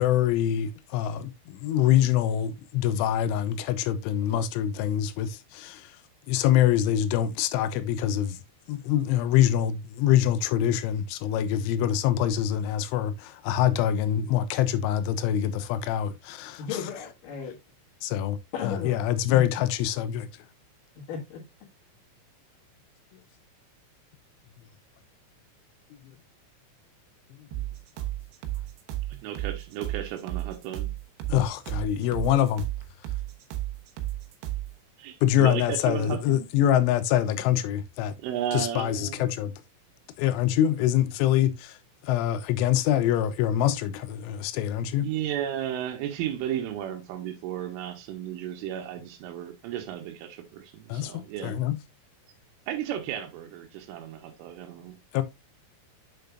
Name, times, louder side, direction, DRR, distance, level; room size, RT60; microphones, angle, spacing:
voice 1, 0.0-5.9 6.3-8.4 8.7-16.6 18.0-18.4 18.6-20.3 31.3-32.7 35.2-38.2 38.5-39.5 40.2-41.8 42.0-45.1 50.9-51.8 55.1-55.2, left 11 dB, 85° left, 3.1 m, -25 dB
voice 2, 16.6-17.6 18.5-18.9 19.3-19.5 21.0-21.4, left 7 dB, 60° left, 2.4 m, -34 dB
sound 1, 27.5-34.7, right 15 dB, 75° right, 2.6 m, -33 dB
voice 3, 29.2-30.9 35.0-36.4 38.2-39.3 45.0-51.6 52.7-55.0, right 10 dB, 90° right, 3.4 m, -34 dB
7.7 x 6.8 x 2.3 m
omnidirectional pair, 5.7 m